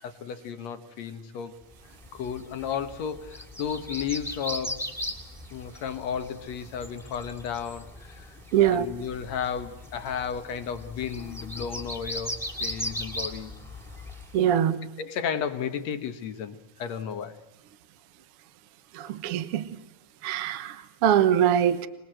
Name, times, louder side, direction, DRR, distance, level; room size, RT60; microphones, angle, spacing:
voice 1, 0.0-1.6 2.1-4.9 5.5-13.5 14.5-14.6 15.0-17.4, left 7 dB, 65° left, 9 dB, 2.6 m, -33 dB
sound 1, 1.9-14.4, left 1 dB, ahead, 2.5 m, -38 dB
voice 2, 8.5-8.9 14.3-14.8 18.9-19.7 20.2-21.9, right 10 dB, 60° right, 12 dB, 1.8 m, -23 dB
26.5 x 21.0 x 7.7 m, 0.99 s
omnidirectional pair, 3.4 m